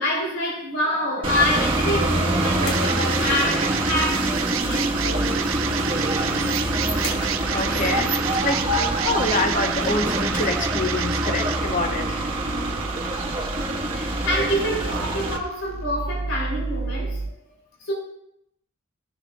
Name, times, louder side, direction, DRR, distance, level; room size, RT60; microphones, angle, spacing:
voice 1, 0.0-5.5 13.0-13.5 13.9-17.9, equal, 80° left, -4 dB, 2.9 m, -27 dB
sound 1, 1.2-15.4, right 1 dB, 25° right, 1.2 m, -25 dB
sound 2, 1.3-17.3, right 7 dB, 75° right, 0.5 m, -30 dB
sound 3, 2.6-4.3 7.0-8.6 9.0-9.1 10.7-11.0, left 2 dB, 65° left, 1.9 m, -36 dB
voice 2, 7.5-8.7 9.0-12.3, left 2 dB, 40° left, 5 dB, 0.8 m, -26 dB
14.5 x 6.4 x 2.3 m, 0.78 s
head